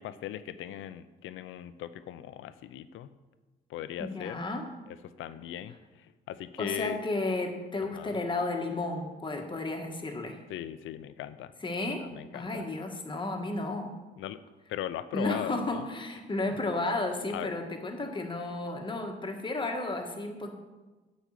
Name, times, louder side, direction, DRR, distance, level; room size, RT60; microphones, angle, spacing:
voice 1, 0.0-3.1 3.7-4.4 4.9-7.0 7.8-8.2 10.5-11.5 12.0-12.7 14.2-14.4 14.7-15.9 17.3-17.5, left 12 dB, 85° left, 13 dB, 0.6 m, -39 dB
voice 2, 4.0-4.7 6.6-10.4 11.6-12.0 12.3-13.9 15.1-20.5, left 2 dB, 25° left, 3 dB, 1.6 m, -33 dB
8.3 x 5.4 x 7.6 m, 1.2 s
cardioid pair, 90°, 20 cm